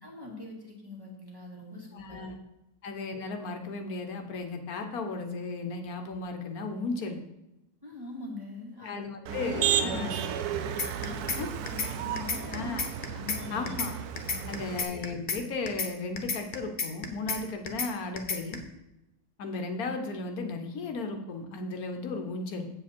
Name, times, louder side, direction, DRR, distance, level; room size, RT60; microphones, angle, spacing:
voice 1, 0.0-2.2 7.8-10.6 11.0-11.4 11.7-13.7 14.3-14.6, left 3 dB, 15° right, -3 dB, 2.0 m, -42 dB
voice 2, 1.9-2.4 2.8-7.2 8.8-10.1 11.4-11.5 12.5-12.9 13.5-14.0 14.5-18.6 19.4-22.7, left 3 dB, 75° left, 5 dB, 1.4 m, -35 dB
Motor vehicle (road), 9.3-14.8, right 9 dB, 90° right, 1.2 m, -33 dB
sound 1, 10.8-11.4 11.7-11.9 12.2-13.4 13.7-13.9 14.2-15.4 15.7-15.9 16.2-17.4 17.7-17.9 18.2-18.5, left 5 dB, 40° left, 0.9 m, -31 dB
8.2 x 7.4 x 4.3 m, 0.91 s
omnidirectional pair, 1.6 m